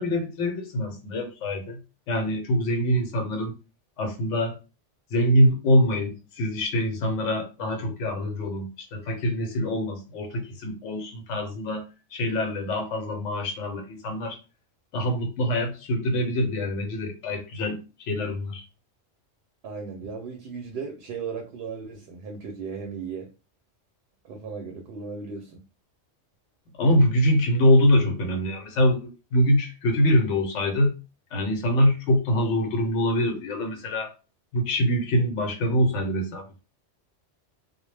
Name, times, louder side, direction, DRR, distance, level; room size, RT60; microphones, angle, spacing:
voice 1, 0.0-1.8 2.1-3.5 4.0-4.6 5.1-11.8 12.1-14.4 14.9-17.8 18.1-18.6 26.8-30.9 31.3-34.1 34.5-36.5, equal, 75° left, 1.0 m, -24 dB
voice 2, 19.6-23.3 24.2-25.6, right 5 dB, 65° right, 0.8 m, -36 dB
2.1 x 2.1 x 3.2 m
omnidirectional pair, 1.2 m